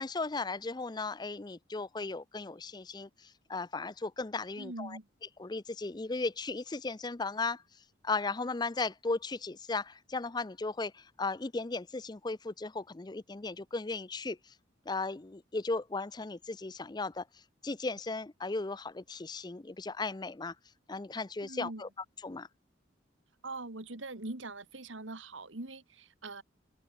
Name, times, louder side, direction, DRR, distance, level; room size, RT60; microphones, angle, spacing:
voice 1, 0.0-5.0 5.4-7.6 8.0-14.5 14.9-17.2 17.6-20.5 20.9-21.9 22.2-22.5, left 3 dB, 20° left, 0.5 m, -36 dB
voice 2, 4.6-5.1 21.4-21.8 23.4-26.4, right 2 dB, 75° right, 2.2 m, -42 dB
head